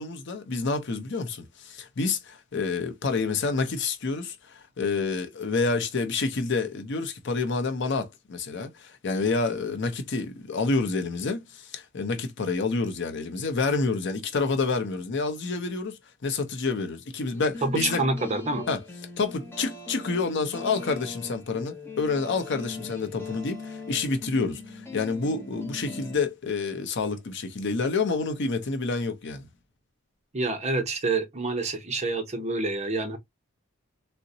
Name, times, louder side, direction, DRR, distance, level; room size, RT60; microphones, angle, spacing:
voice 1, 0.0-18.0 18.7-18.8 19.2-29.5, left 4 dB, 60° left, 0.6 m, -28 dB
sound 1, 17.3-26.2, left 3 dB, 10° left, 0.7 m, -40 dB
voice 2, 17.6-18.7 30.3-33.2, right 3 dB, 35° right, 0.7 m, -27 dB
3.8 x 2.1 x 2.6 m
head